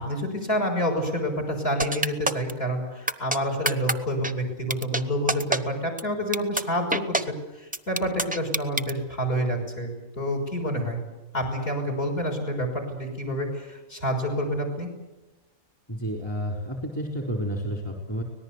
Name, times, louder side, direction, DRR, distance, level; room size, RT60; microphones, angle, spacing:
voice 1, 0.0-11.0 11.3-14.9, equal, 45° left, 3 dB, 6.2 m, -28 dB
sound 1, 1.8-2.5 3.1-3.4 3.6-3.9 4.2-4.3 4.7-5.0 5.3-5.6 6.0-6.1 6.3-6.6 6.9-7.2 7.7-8.9, right 2 dB, 10° right, 0.7 m, -24 dB
voice 2, 15.9-18.2, equal, 20° left, 1 dB, 4.2 m, -30 dB
25.0 x 19.0 x 8.2 m, 1.1 s
omnidirectional pair, 1.4 m